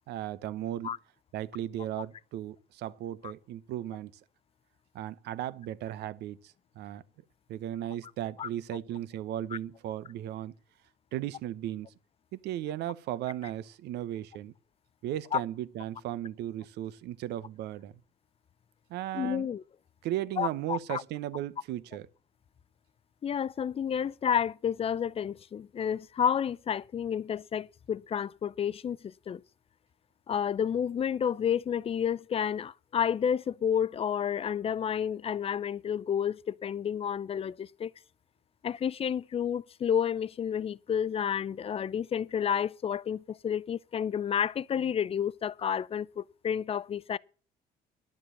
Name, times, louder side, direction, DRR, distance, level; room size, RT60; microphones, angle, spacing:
voice 1, 0.1-0.9 1.3-4.1 4.9-7.0 7.5-10.5 11.1-11.9 12.3-14.5 15.0-17.9 18.9-19.5 20.0-22.1, right 12 dB, 80° right, 0.9 m, -36 dB
voice 2, 19.1-19.6 20.4-21.0 23.2-29.4 30.3-37.9 38.6-47.2, left 8 dB, 35° left, 0.6 m, -30 dB
12.0 x 7.6 x 6.7 m
cardioid pair, 110°, 17 cm